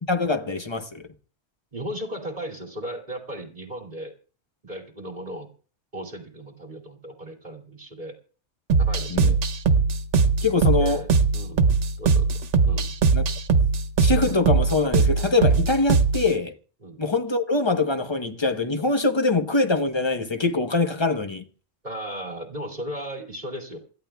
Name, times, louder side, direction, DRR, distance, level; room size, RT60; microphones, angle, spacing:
voice 1, 0.1-1.0 9.1-9.3 10.4-11.0 13.1-13.2 14.0-16.5 17.0-21.4, left 3 dB, 25° left, 0.9 m, -23 dB
voice 2, 1.7-4.1 4.6-5.5 5.9-8.2 8.8-9.4 10.8-11.1 11.3-11.7 12.0-12.3 12.6-12.9 16.8-17.0 21.8-23.8, equal, 40° right, 2.7 m, -36 dB
sound 1, 8.7-16.3, right 4 dB, 90° right, 1.2 m, -20 dB
27.5 x 13.5 x 2.3 m
omnidirectional pair, 1.2 m